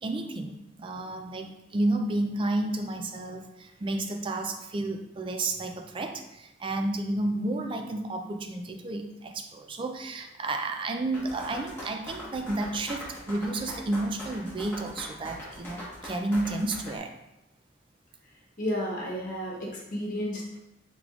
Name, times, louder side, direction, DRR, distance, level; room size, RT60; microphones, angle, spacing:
voice 1, 0.0-17.1, right 2 dB, 25° right, 5 dB, 0.3 m, -31 dB
sound 1, 11.1-17.0, equal, 10° left, 1.2 m, -41 dB
voice 2, 18.6-20.6, equal, 45° left, -4 dB, 1.2 m, -32 dB
4.8 x 3.7 x 2.4 m, 0.94 s
head